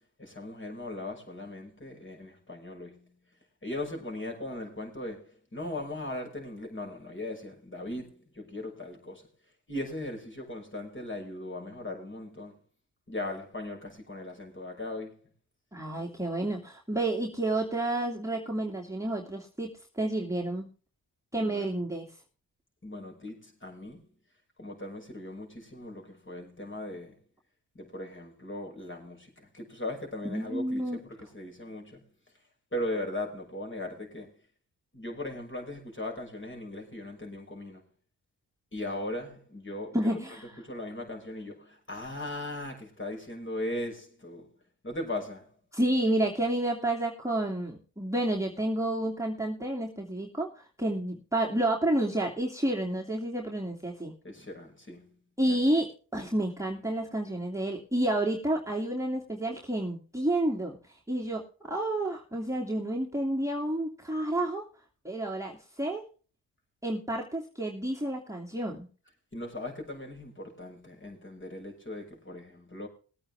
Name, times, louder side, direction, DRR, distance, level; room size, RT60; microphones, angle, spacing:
voice 1, 0.2-3.2 3.6-9.3 9.7-12.5 13.1-15.2 21.4-21.7 22.8-24.0 24.6-27.2 27.7-32.1 32.7-34.3 34.9-37.8 38.7-40.1 40.6-44.5 44.8-45.5 54.2-55.2 55.5-55.6 69.3-72.9, left 1 dB, 25° left, 6.3 m, -38 dB
voice 2, 15.7-20.7 21.3-22.1 30.2-31.0 39.9-40.5 45.7-54.1 55.4-60.8 61.1-64.6 65.0-66.0 66.8-68.9, right 1 dB, 5° right, 2.7 m, -30 dB
20.5 x 8.7 x 3.5 m
supercardioid pair, 60°, 46 cm